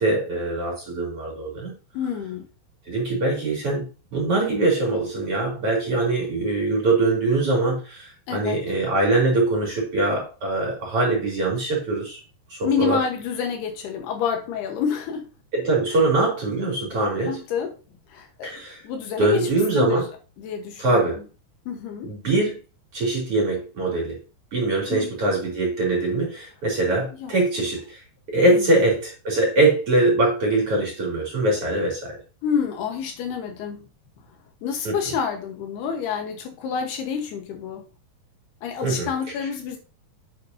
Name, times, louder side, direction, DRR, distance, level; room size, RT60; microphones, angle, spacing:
voice 1, 0.0-1.7 2.9-12.2 12.5-13.0 15.5-17.4 18.4-18.8 19.2-20.0 20.8-21.2 22.0-22.6 22.9-24.2 24.5-28.0 28.3-32.2 34.8-34.9 38.8-39.1, right 2 dB, 35° right, -2 dB, 3.5 m, -22 dB
voice 2, 1.9-2.5 8.3-8.6 12.6-15.3 17.3-17.7 18.1-20.0 20.4-21.2 21.7-22.1 24.9-25.1 27.2-27.4 28.6-28.8 32.4-33.9 34.6-37.8 38.6-39.8, left 7 dB, 75° left, 4 dB, 3.1 m, -28 dB
8.6 x 8.5 x 2.7 m, 0.32 s
omnidirectional pair, 5.0 m